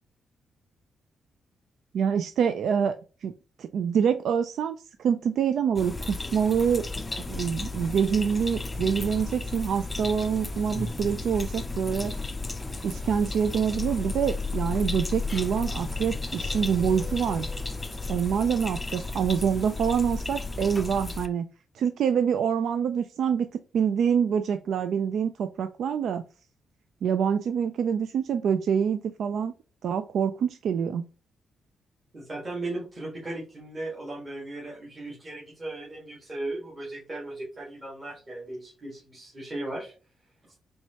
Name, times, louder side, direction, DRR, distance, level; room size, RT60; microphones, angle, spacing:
voice 1, 1.9-3.0 3.2-3.3 3.6-6.9 7.3-12.1 12.8-17.5 18.1-21.5 21.7-26.2 27.0-29.5 29.8-31.0, right 7 dB, 70° right, 9 dB, 0.3 m, -26 dB
sound 1, 5.8-21.3, left 3 dB, 15° left, 0.4 m, -33 dB
voice 2, 32.1-39.9, right 2 dB, 25° right, -5 dB, 1.6 m, -37 dB
4.5 x 3.2 x 2.8 m, 0.35 s
cardioid pair, 125°, 0 cm